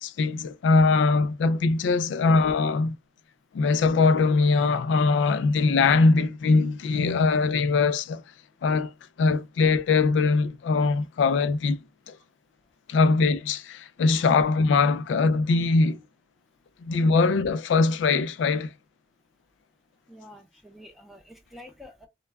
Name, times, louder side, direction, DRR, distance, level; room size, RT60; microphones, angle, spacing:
voice 1, 0.0-3.0 3.5-8.2 8.6-8.9 9.2-11.8 12.1-12.2 12.9-16.0 16.8-18.7, left 4 dB, 85° left, 0.3 m, -22 dB
voice 2, 20.1-22.1, left 1 dB, ahead, 0.5 m, -48 dB
2.1 x 2.1 x 3.3 m
head